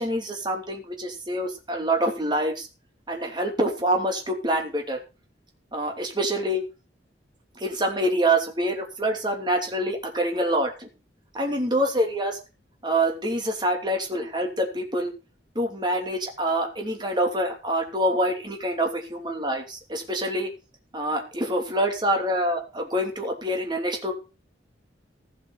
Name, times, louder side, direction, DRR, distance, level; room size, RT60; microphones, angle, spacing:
voice 1, 0.0-2.7 3.1-5.0 5.7-6.6 7.6-10.9 11.3-12.4 12.8-15.1 15.5-20.5 20.9-24.1, right 1 dB, 25° right, 2 dB, 2.9 m, -26 dB
16.0 x 5.9 x 6.5 m, 0.31 s
head